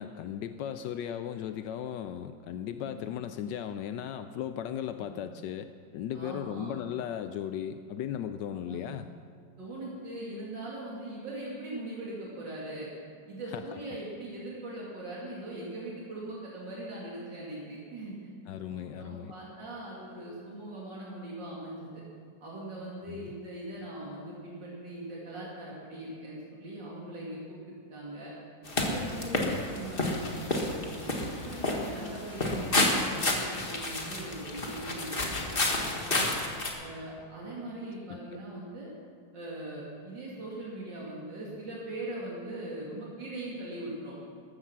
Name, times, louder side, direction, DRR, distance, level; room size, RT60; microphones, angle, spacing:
voice 1, 0.0-9.1 13.5-13.6 18.5-19.3 23.1-23.3 29.4-29.6 38.1-38.2, left 9 dB, 80° left, 9 dB, 1.2 m, -36 dB
voice 2, 6.1-6.7 8.7-8.9 9.6-12.9 13.3-18.2 18.7-22.0 22.4-28.3 28.8-30.8 31.2-36.2 36.8-38.9 39.3-44.1, right 1 dB, 80° right, -5 dB, 3.1 m, -41 dB
sound 1, 28.7-36.7, left 2 dB, 30° left, 1.7 m, -30 dB
14.0 x 13.5 x 5.9 m, 2.2 s
omnidirectional pair, 1.9 m